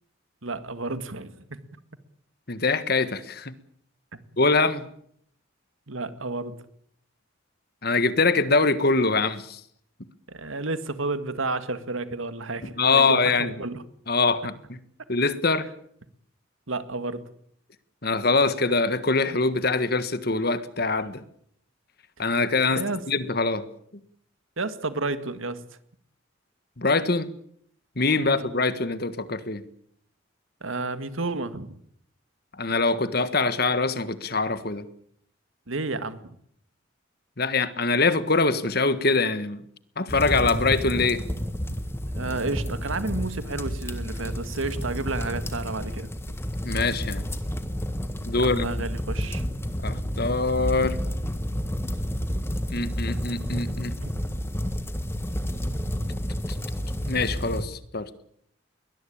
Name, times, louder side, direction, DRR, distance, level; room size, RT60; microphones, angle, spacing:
voice 1, 0.4-1.6 4.1-4.2 5.9-6.6 10.3-13.8 16.7-17.2 22.7-23.0 24.6-25.6 28.1-28.5 30.6-31.7 35.7-36.2 42.1-46.4 48.4-49.6 54.0-54.1, right 3 dB, 80° right, 11 dB, 2.0 m, -31 dB
voice 2, 2.5-3.5 4.4-4.9 7.8-9.6 12.8-13.5 14.1-14.8 15.1-15.7 18.0-21.2 22.2-23.7 23.9-24.0 26.8-27.3 28.0-29.6 32.6-34.9 37.4-39.6 40.0-41.2 46.6-47.3 48.3-48.7 49.8-51.0 52.7-53.9 57.1-58.1, left 3 dB, 50° left, 13 dB, 1.6 m, -24 dB
sound 1, 40.1-57.6, equal, 10° left, 1.6 m, -30 dB
21.5 x 20.5 x 8.7 m, 0.67 s
head